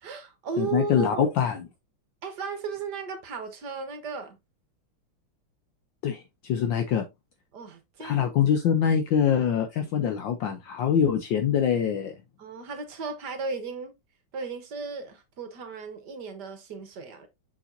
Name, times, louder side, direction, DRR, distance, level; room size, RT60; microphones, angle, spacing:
voice 1, 0.0-1.4 2.2-4.4 7.5-8.4 12.4-13.9 14.3-17.3, right 5 dB, 55° right, 1.6 m, -35 dB
voice 2, 0.6-1.6 6.0-7.0 8.0-12.1, left 8 dB, 70° left, 1.3 m, -24 dB
6.9 x 5.8 x 2.6 m
omnidirectional pair, 2.3 m